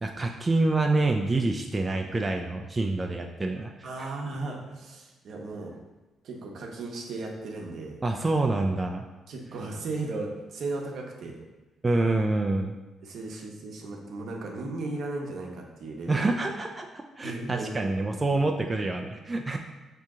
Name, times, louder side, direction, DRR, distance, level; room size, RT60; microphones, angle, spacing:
voice 1, 0.0-4.1 8.0-9.0 11.8-12.7 16.1-19.6, right 2 dB, 25° right, 2 dB, 0.3 m, -27 dB
voice 2, 3.8-5.7 6.2-8.0 9.3-11.4 13.0-16.3 17.2-18.2, right 2 dB, 65° right, 1 dB, 0.7 m, -36 dB
4.9 x 2.8 x 3.6 m, 1.1 s
cardioid pair, 90°, 0 cm